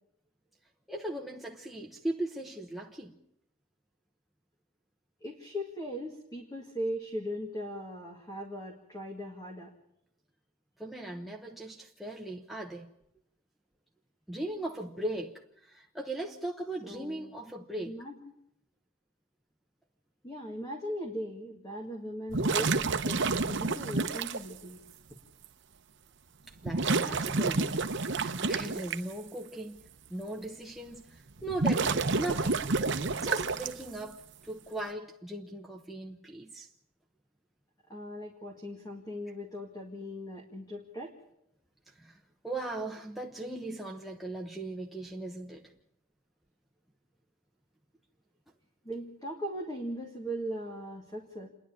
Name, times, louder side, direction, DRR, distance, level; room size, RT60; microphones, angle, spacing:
voice 1, 0.9-3.2 10.8-12.9 14.3-17.9 26.5-27.8 28.1-29.8 30.1-32.7 33.2-36.7 41.9-45.7, right 1 dB, ahead, 1.0 m, -38 dB
voice 2, 5.2-9.7 16.8-17.3 17.8-18.3 20.2-24.8 37.9-41.1 48.8-51.5, equal, 20° left, 2.0 m, -39 dB
sound 1, 22.3-24.4 25.4-25.5 26.6-29.0 31.4-34.0, right 3 dB, 55° right, 0.9 m, -29 dB
28.0 x 11.0 x 8.8 m
head